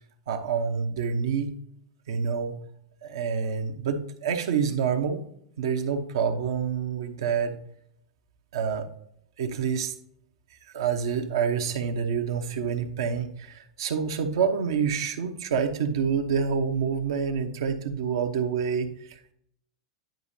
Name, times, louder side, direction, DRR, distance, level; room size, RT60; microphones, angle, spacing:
voice 1, 0.3-1.5 2.1-2.6 3.0-5.2 5.6-7.5 8.5-8.9 9.4-9.9 10.7-19.3, right 6 dB, 75° right, 6 dB, 1.0 m, -27 dB
10.5 x 5.0 x 2.8 m, 0.70 s
hypercardioid pair, 100°, 2 cm